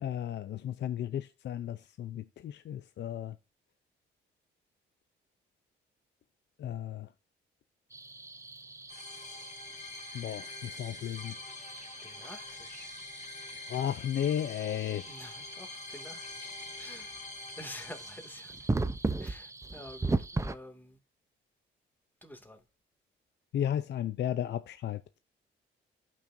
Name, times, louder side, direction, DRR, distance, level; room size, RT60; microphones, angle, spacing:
voice 1, 0.0-3.4 6.6-7.1 10.1-11.3 13.7-15.1 23.5-25.0, left 10 dB, 60° left, 0.6 m, -34 dB
sound 1, 7.9-20.5, right 3 dB, 15° right, 0.7 m, -39 dB
sound 2, 8.9-18.8, left 3 dB, 35° left, 2.2 m, -46 dB
voice 2, 12.0-12.9 15.1-16.5 16.8-17.1 17.6-18.6 19.2-21.0 22.2-22.6, left 1 dB, 10° left, 2.4 m, -48 dB
14.0 x 6.2 x 2.7 m
cardioid pair, 90°, 20 cm